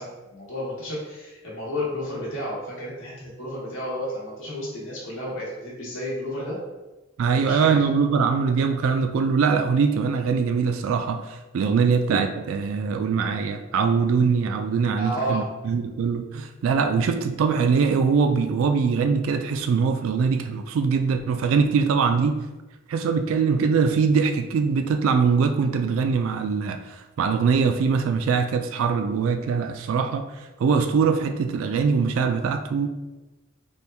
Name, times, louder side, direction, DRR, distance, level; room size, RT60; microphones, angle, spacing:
voice 1, 0.0-6.6 7.3-7.7 15.0-15.4, equal, 70° left, -7 dB, 1.1 m, -32 dB
voice 2, 7.2-22.4 22.9-32.9, right 5 dB, 75° right, 7 dB, 0.3 m, -22 dB
4.3 x 2.2 x 3.3 m, 1.1 s
head